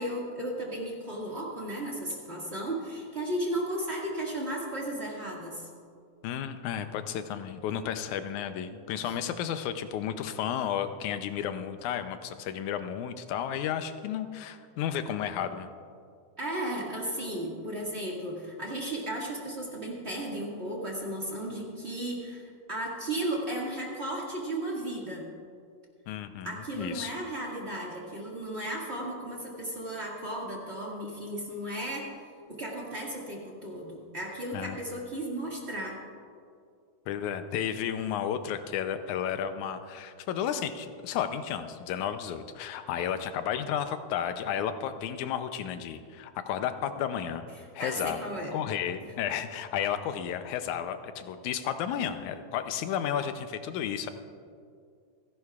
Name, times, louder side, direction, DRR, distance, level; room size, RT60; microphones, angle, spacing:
voice 1, 0.0-5.7 9.0-9.2 16.4-25.3 26.4-32.1 32.5-36.0 47.6-48.5, right 1 dB, 25° right, -3 dB, 1.7 m, -35 dB
voice 2, 6.2-15.7 26.1-27.1 34.5-34.8 37.1-47.4 47.8-48.2 48.5-54.1, left 9 dB, 80° left, 9 dB, 2.1 m, -32 dB
28.5 x 11.0 x 2.4 m, 2.3 s
omnidirectional pair, 3.5 m